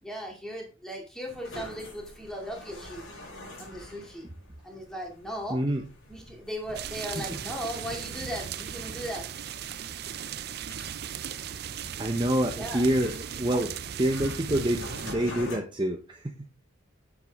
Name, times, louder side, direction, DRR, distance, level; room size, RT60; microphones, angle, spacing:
voice 1, 0.0-3.1 3.6-4.3 4.6-5.6 6.1-9.3 12.5-12.8, equal, 5° left, -1 dB, 2.4 m, -37 dB
sound 1, 1.3-15.6, left 1 dB, 80° left, 5.7 m, -47 dB
voice 2, 5.5-5.8 7.2-7.3 12.0-16.5, right 1 dB, 20° right, 3 dB, 0.8 m, -27 dB
sound 2, 6.7-15.1, right 8 dB, 50° right, 0.5 m, -37 dB
8.9 x 7.5 x 3.5 m, 0.32 s
head